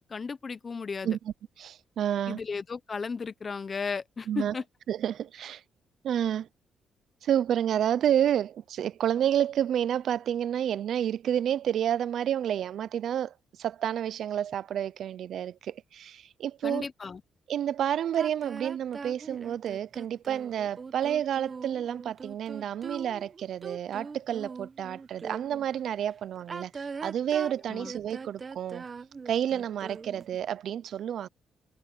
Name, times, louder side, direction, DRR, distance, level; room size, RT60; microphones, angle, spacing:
voice 1, 0.0-1.2 2.3-4.6 16.6-17.2 27.7-27.9, left 5 dB, 35° left, 0.8 m, -35 dB
voice 2, 1.6-2.4 4.3-4.5 4.9-5.6 6.0-6.5 7.2-16.9 17.5-28.8 29.3-31.3, right 10 dB, 70° right, 0.6 m, -30 dB
sound 1, 18.1-25.7 26.4-30.4, right 5 dB, 35° right, 1.2 m, -41 dB
cardioid pair, 90°, 0 cm